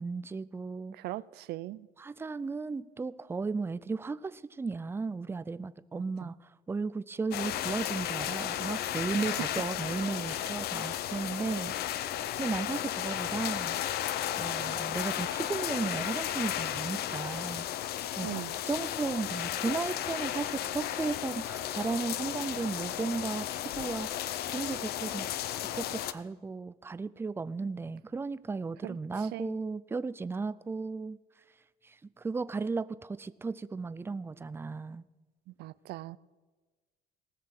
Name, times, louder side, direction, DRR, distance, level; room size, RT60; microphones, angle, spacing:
voice 1, 0.0-0.9 2.0-13.8 14.4-17.7 18.1-25.3 25.6-31.2 31.8-35.0, right 4 dB, 15° right, 0.4 m, -35 dB
voice 2, 0.9-1.9 5.9-6.3 9.1-9.3 18.2-18.5 28.8-29.6 35.5-36.2, right 17 dB, 75° right, 0.4 m, -41 dB
sound 1, 7.3-26.1, left 12 dB, 70° left, 0.6 m, -34 dB
18.5 x 6.7 x 5.9 m
cardioid pair, 110°, 17 cm